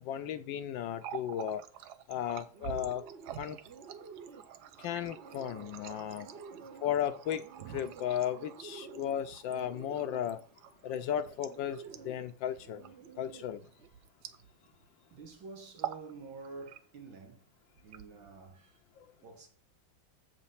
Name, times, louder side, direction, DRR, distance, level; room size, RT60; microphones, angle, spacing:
voice 1, 0.0-1.6 2.1-3.0 3.3-3.6 4.8-6.3 6.8-10.4 10.8-12.9 13.2-13.6 19.0-19.1, left 10 dB, 75° left, 1.3 m, -35 dB
Water tap faucet, 0.8-14.9 15.1-15.4 15.7-16.1 16.4-17.1 17.7-18.5, right 10 dB, 70° right, 1.1 m, -47 dB
Bird, 2.5-13.9, right 5 dB, 50° right, 0.9 m, -52 dB
voice 2, 4.2-5.0 6.5-6.8 13.0-13.2 13.6-14.1 15.1-17.5 17.8-18.8 19.2-19.5, right 4 dB, 85° right, 2.5 m, -50 dB
7.4 x 5.2 x 5.6 m
omnidirectional pair, 2.1 m